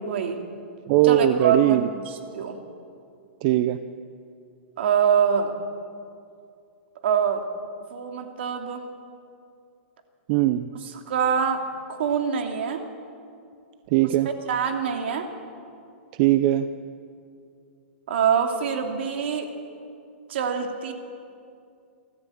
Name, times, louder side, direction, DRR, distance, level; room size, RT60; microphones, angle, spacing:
voice 1, 0.1-0.4 1.0-2.0 2.3-2.6 4.8-5.5 7.0-7.4 7.9-8.8 11.1-11.6 12.0-12.8 14.5-15.3 18.1-19.5 20.3-20.9, right 7 dB, 70° right, 4 dB, 2.8 m, -24 dB
voice 2, 0.9-1.9 3.4-3.8 10.3-10.7 13.9-14.3 16.2-16.7, right 14 dB, 45° right, 11 dB, 0.7 m, -20 dB
26.0 x 13.5 x 8.7 m, 2.4 s
hypercardioid pair, 150°, 6 cm